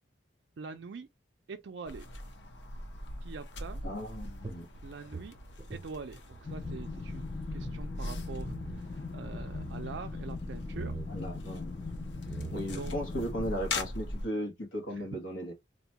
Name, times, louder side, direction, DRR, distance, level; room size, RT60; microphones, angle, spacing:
voice 1, 0.6-1.1 1.5-2.1 3.2-3.8 4.8-5.3 5.7-11.0 12.7-12.9 14.9-15.1, right 4 dB, 65° right, 0.4 m, -44 dB
sound 1, 1.8-14.3, left 2 dB, 65° left, 0.7 m, -42 dB
voice 2, 3.8-4.7 11.1-12.0 12.5-15.5, equal, 90° left, 1.2 m, -36 dB
sound 2, 4.4-6.9 7.1-7.2 7.5-7.8 8.4-8.9 9.2-9.8 10.7-11.1 11.9-12.0 12.2-12.9, right 2 dB, 20° right, 0.6 m, -42 dB
sound 3, 6.4-13.5, left 3 dB, 30° left, 0.3 m, -40 dB
4.0 x 2.2 x 2.8 m
head